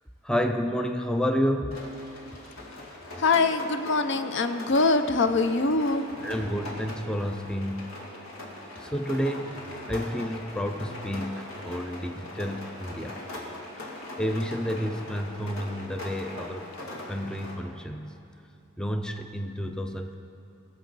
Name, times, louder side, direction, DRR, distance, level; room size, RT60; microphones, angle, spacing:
voice 1, 0.2-1.8 6.2-8.1 8.8-13.2 14.2-16.7 17.1-18.1 18.8-20.1, equal, 5° left, 5 dB, 0.4 m, -30 dB
Rain, 1.7-17.5, left 1 dB, 90° left, 2.3 m, -41 dB
voice 2, 3.2-6.1, left 3 dB, 60° left, 9 dB, 0.5 m, -23 dB
21.0 x 7.1 x 4.0 m, 2.6 s
head